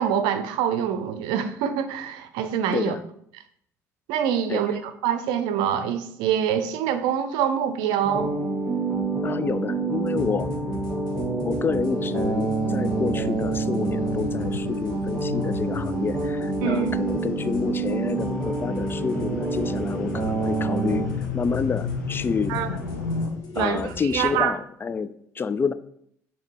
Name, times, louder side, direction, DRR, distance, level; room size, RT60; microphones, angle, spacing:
voice 1, 0.0-2.9 4.1-8.3 16.6-16.9 22.5-22.7 23.5-24.5, right 9 dB, 65° right, 10 dB, 0.6 m, -25 dB
sound 1, 8.0-21.1, right 3 dB, 10° right, 2.3 m, -27 dB
voice 2, 9.2-10.5 11.4-21.1 21.3-22.6 23.6-25.7, left 5 dB, 25° left, 14 dB, 0.4 m, -28 dB
sound 2, 10.1-24.4, left 2 dB, 50° left, 1.7 m, -41 dB
sound 3, 14.0-23.3, left 5 dB, 80° left, 0.9 m, -34 dB
6.4 x 2.9 x 5.3 m, 0.68 s
figure-of-eight pair, 55°, 8 cm